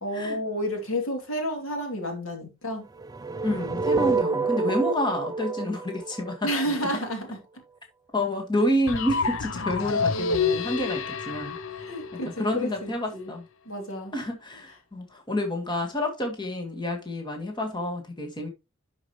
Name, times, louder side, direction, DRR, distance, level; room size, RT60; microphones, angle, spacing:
voice 1, 0.0-2.9 6.4-7.4 11.8-13.3 13.6-14.1, equal, 85° left, 2.9 m, -30 dB
sound 1, 3.0-7.1, right 4 dB, 20° right, 0.4 m, -28 dB
voice 2, 3.4-6.5 8.1-11.6 12.4-13.4 14.1-18.5, left 1 dB, 20° left, 1.9 m, -29 dB
sound 2, 8.9-12.8, left 5 dB, 70° left, 0.6 m, -28 dB
11.0 x 5.2 x 3.1 m
head